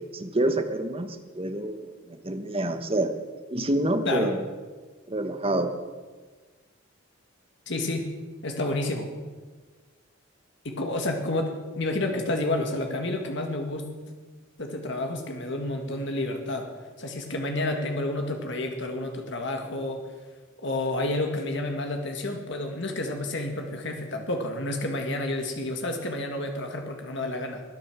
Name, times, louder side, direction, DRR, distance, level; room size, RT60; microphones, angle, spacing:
voice 1, 0.1-3.1 3.5-4.4 5.1-5.7, right 1 dB, 30° right, 7 dB, 1.3 m, -27 dB
voice 2, 7.7-8.1 8.4-9.1 10.6-13.9 14.6-16.7 17.0-20.1 20.6-27.6, left 2 dB, 60° left, 4 dB, 1.9 m, -30 dB
20.0 x 10.0 x 6.2 m, 1.4 s
head